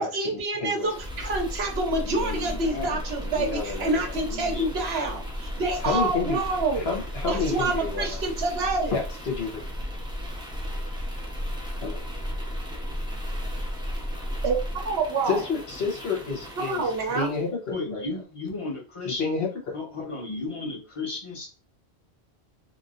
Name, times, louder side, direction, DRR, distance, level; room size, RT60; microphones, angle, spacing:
voice 1, 0.0-6.9 7.3-9.0 14.4-15.4 16.6-17.3, right 3 dB, 70° right, 2 dB, 1.1 m, -27 dB
voice 2, 0.5-0.9 3.4-4.1 5.8-6.4 6.7-8.2 8.9-9.6 11.8-12.1 15.3-18.0 19.0-19.7, left 4 dB, 70° left, 0 dB, 1.2 m, -29 dB
sound 1, 0.8-17.5, equal, 5° right, 0.6 m, -34 dB
voice 3, 2.0-3.3 4.1-5.2 17.7-19.2 19.7-21.5, left 3 dB, 30° left, -3 dB, 1.0 m, -35 dB
3.5 x 2.6 x 2.4 m, 0.32 s
omnidirectional pair, 1.1 m